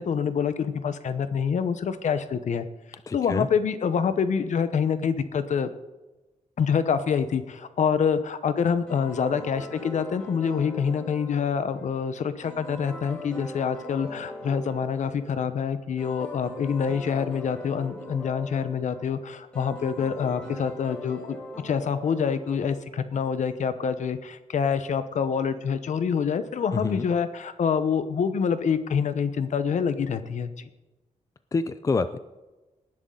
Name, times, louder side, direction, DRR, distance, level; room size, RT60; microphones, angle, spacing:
voice 1, 0.0-2.7 3.1-5.7 6.6-21.4 21.6-30.7, left 6 dB, 70° left, 11 dB, 1.0 m, -26 dB
voice 2, 3.1-3.5 26.8-27.1 31.5-32.2, left 4 dB, 25° left, 12 dB, 0.5 m, -27 dB
sound 1, 8.9-23.1, left 1 dB, 5° left, 5.2 m, -41 dB
18.5 x 11.0 x 3.9 m, 1.1 s
wide cardioid pair, 170°, 13 cm